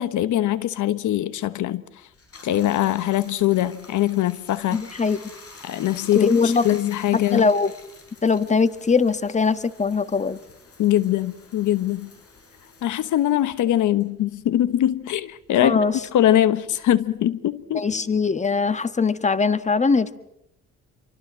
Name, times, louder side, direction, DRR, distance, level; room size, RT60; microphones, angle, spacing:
voice 1, 0.0-1.8 2.4-4.8 5.6-7.5 10.8-12.1 12.8-15.8 16.1-17.9, left 12 dB, 75° left, 1.2 m, -22 dB
Bathtub (filling or washing), 2.1-14.9 15.3-17.1, left 3 dB, 50° left, 7.8 m, -48 dB
voice 2, 4.7-5.2 6.1-6.6 7.3-7.7 8.2-10.4 15.6-15.9 17.7-20.2, left 4 dB, 25° left, 1.4 m, -21 dB
28.0 x 24.0 x 7.5 m
cardioid pair, 90°, 30 cm